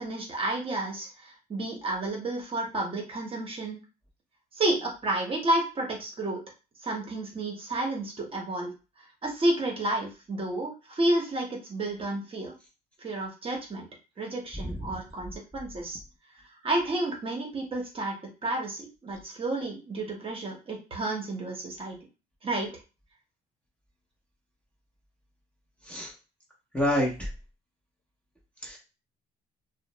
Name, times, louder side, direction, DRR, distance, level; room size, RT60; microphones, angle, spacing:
voice 1, 0.0-3.8 4.6-6.4 6.8-8.7 9.2-12.5 13.0-13.9 14.2-16.0 16.6-18.1 18.4-22.0 22.4-22.7, right 2 dB, 35° right, 0 dB, 0.8 m, -31 dB
voice 2, 26.7-27.3 28.6-28.8, left 1 dB, 5° left, -3 dB, 0.7 m, -27 dB
2.4 x 2.0 x 2.9 m, 0.31 s
cardioid pair, 110°, 17 cm